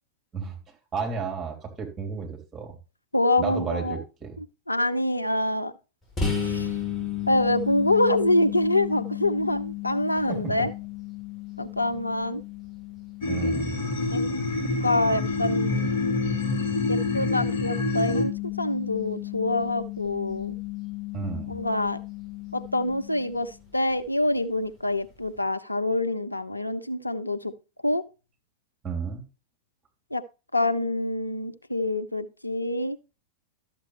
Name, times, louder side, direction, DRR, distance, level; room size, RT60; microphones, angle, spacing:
voice 1, 0.3-2.7 3.4-4.4 10.3-10.5 13.3-13.7 21.1-21.5 28.8-29.2, right 5 dB, 20° right, 2 dB, 3.2 m, -32 dB
voice 2, 3.1-4.0 4.4-5.7 6.4-6.7 7.3-10.7 11.6-12.4 14.1-14.3 14.8-16.2 16.9-18.3 18.6-20.5 21.5-22.0 22.5-27.5 27.8-28.0 30.1-30.2 30.5-33.0, left 1 dB, 85° left, 10 dB, 0.6 m, -26 dB
sound 1, 6.2-23.7, left 11 dB, 15° left, 4.0 m, -34 dB
sound 2, 13.2-18.2, left 1 dB, 55° left, 2.1 m, -27 dB
12.5 x 7.3 x 3.3 m, 0.31 s
figure-of-eight pair, 90°, 0 cm